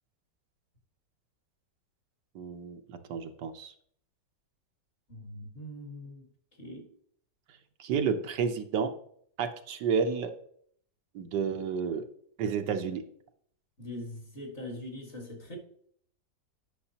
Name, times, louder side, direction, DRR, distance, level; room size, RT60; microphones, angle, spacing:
voice 1, 2.3-3.7 7.8-8.9 9.4-10.3 11.1-12.0 12.4-13.0, right 6 dB, 75° right, 1.3 m, -31 dB
voice 2, 5.1-6.2 6.6-6.9 13.8-15.6, left 1 dB, 40° left, 2.0 m, -42 dB
9.8 x 6.1 x 2.8 m
omnidirectional pair, 1.9 m